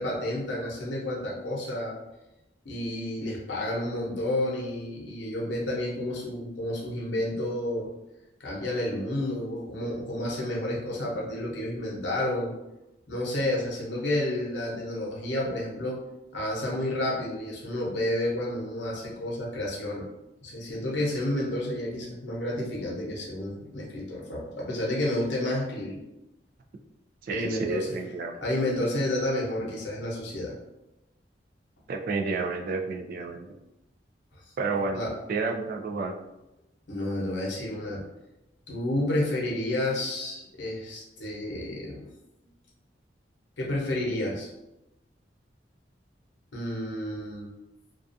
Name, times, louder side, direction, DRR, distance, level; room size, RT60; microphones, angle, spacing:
voice 1, 0.0-2.0 2.6-7.9 8.4-12.5 13.1-16.0 16.3-20.1 20.4-26.0 27.3-27.9 28.4-30.5 34.9-35.1 36.9-38.0 38.7-42.1 43.6-44.5 46.5-47.5, left 1 dB, 80° left, -3 dB, 0.8 m, -30 dB
voice 2, 27.2-28.4 31.9-33.5 34.6-35.0 35.3-36.1, right 3 dB, 50° right, 3 dB, 0.3 m, -30 dB
2.4 x 2.3 x 2.5 m, 0.93 s
head